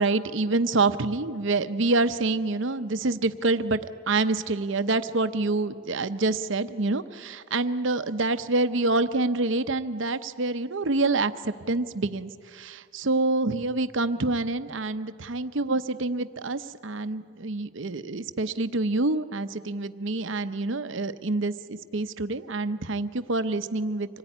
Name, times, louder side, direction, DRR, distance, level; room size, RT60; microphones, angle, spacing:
voice 1, 0.0-3.8 4.1-24.2, right 3 dB, 60° right, 11 dB, 0.8 m, -27 dB
25.5 x 18.5 x 9.9 m, 2.1 s
head